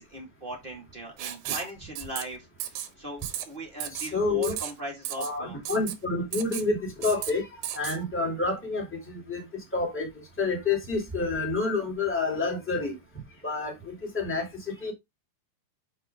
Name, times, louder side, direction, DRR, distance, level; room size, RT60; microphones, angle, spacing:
voice 1, 0.0-5.6, right 1 dB, 20° right, 1.6 m, -39 dB
Writing, 1.2-1.7 2.0-2.2 2.6-2.9 3.2-3.4 3.8-4.1 4.4-4.7 5.0-5.3 5.7-5.9 6.3-6.7 7.0-7.3 7.6-8.0, right 11 dB, 75° right, 3.0 m, -34 dB
voice 2, 3.9-4.6 5.2-13.0 13.4-14.9, left 3 dB, 5° left, 2.6 m, -29 dB
7.3 x 6.4 x 3.7 m
omnidirectional pair, 5.3 m